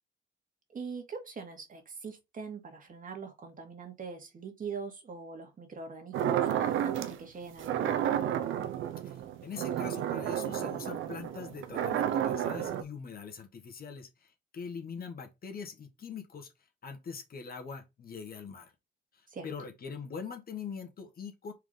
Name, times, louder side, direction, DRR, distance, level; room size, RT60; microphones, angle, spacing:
voice 1, 0.7-8.0 19.3-19.5, right 5 dB, 45° right, 2.2 m, -42 dB
sound 1, 6.1-7.2 7.6-12.8, right 10 dB, 85° right, 0.9 m, -31 dB
voice 2, 9.0-16.5 16.8-18.7 19.1-21.5, left 6 dB, 50° left, 1.6 m, -43 dB
4.7 x 3.7 x 5.2 m
cardioid pair, 90°, 20 cm